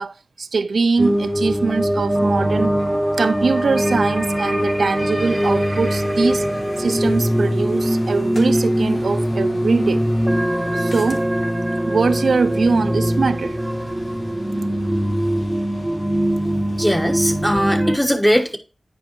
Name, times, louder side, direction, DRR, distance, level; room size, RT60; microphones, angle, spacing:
voice 1, 0.0-2.8 3.2-6.4 6.8-10.1 10.7-11.2 11.9-13.6, right 4 dB, 85° right, 0.4 m, -22 dB
sound 1, 1.0-17.4, left 1 dB, 75° left, 1.6 m, -40 dB
sound 2, 1.0-18.0, equal, 10° right, 0.6 m, -21 dB
sound 3, 8.3-8.6 10.8-11.3, left 1 dB, 45° left, 1.2 m, -38 dB
voice 2, 16.8-18.6, equal, 10° left, 1.1 m, -19 dB
9.8 x 5.2 x 3.0 m
wide cardioid pair, 100°, 0 cm